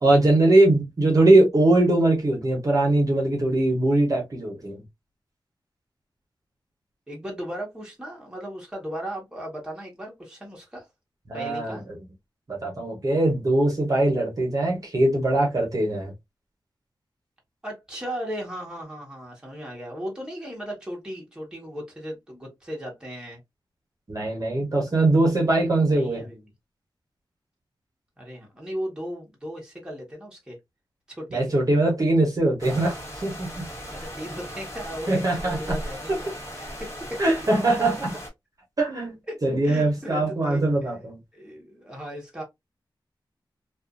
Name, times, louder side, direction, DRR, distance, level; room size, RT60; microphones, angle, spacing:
voice 1, 0.0-4.8 11.3-11.8 12.5-16.1 24.1-26.3 31.3-33.7 35.1-35.8 37.2-38.2 38.8-39.1 39.4-41.2, right 2 dB, 45° right, 0.9 m, -21 dB
voice 2, 7.1-10.9 11.3-11.8 17.6-23.4 25.9-26.4 28.2-30.6 31.1-31.5 33.9-36.3 36.6-37.2 39.3-40.7 41.3-42.4, equal, 10° right, 1.1 m, -36 dB
sound 1, 32.6-38.3, equal, 35° left, 1.3 m, -37 dB
2.4 x 2.4 x 2.4 m
wide cardioid pair, 120°, 9 cm